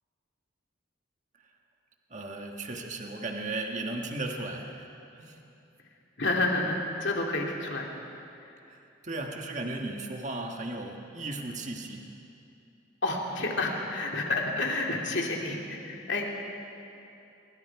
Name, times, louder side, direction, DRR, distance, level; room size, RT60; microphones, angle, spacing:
voice 1, 2.1-4.9 5.2-5.4 8.7-12.1, right 2 dB, 35° right, 2 dB, 1.5 m, -36 dB
voice 2, 6.2-7.9 8.4-8.5 13.0-16.4, left 2 dB, 60° left, 0 dB, 2.8 m, -30 dB
24.0 x 23.5 x 4.7 m, 2.7 s
head